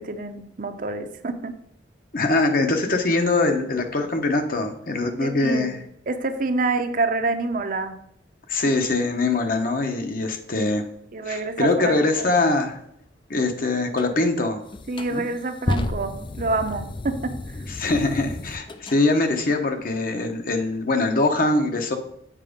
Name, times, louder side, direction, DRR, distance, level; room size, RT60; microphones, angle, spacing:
voice 1, 0.0-1.5 5.2-5.8 6.1-8.0 11.1-12.3 14.9-17.6, right 3 dB, 50° right, 7 dB, 0.7 m, -27 dB
voice 2, 2.1-5.8 8.5-10.8 11.3-12.8 13.3-14.6 15.1-15.2 17.7-22.0, left 2 dB, 50° left, 5 dB, 1.0 m, -23 dB
sound 1, 13.9-14.1 14.7-19.0, left 2 dB, 25° left, 0.4 m, -31 dB
7.5 x 4.9 x 5.1 m, 0.74 s
head